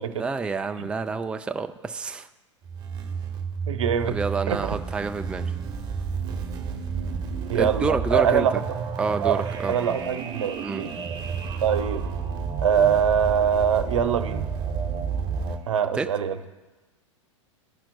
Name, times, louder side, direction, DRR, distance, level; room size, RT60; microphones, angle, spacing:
voice 1, 0.1-2.3 4.1-5.4 7.5-8.6 9.0-9.8 10.6-10.8 16.0-16.1, right 4 dB, 5° right, 7 dB, 0.4 m, -29 dB
sound 1, 2.7-15.6, right 5 dB, 25° right, 1.1 m, -31 dB
voice 2, 3.7-4.2 4.5-4.7 7.5-8.6 9.2-9.4 9.7-10.9 11.6-12.1 12.6-14.5 15.7-16.4, right 8 dB, 75° right, 9 dB, 0.8 m, -23 dB
16.0 x 5.8 x 2.3 m, 1.2 s
hypercardioid pair, 110°, 16 cm